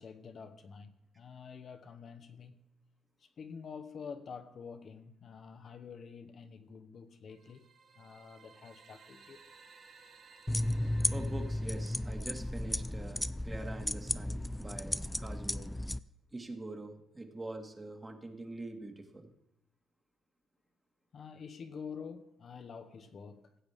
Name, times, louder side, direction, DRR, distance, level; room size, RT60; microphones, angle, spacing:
voice 1, 0.0-2.7 3.2-7.7 7.9-9.4 21.1-23.6, left 6 dB, 55° left, 1.0 m, -48 dB
sound 1, 7.3-13.2, right 4 dB, 65° right, 4.7 m, -59 dB
sound 2, 10.5-16.0, left 1 dB, 10° left, 0.3 m, -34 dB
voice 2, 11.1-15.7 16.3-19.4, right 2 dB, 20° right, 1.8 m, -44 dB
16.0 x 7.9 x 3.6 m
cardioid pair, 90°, 0 cm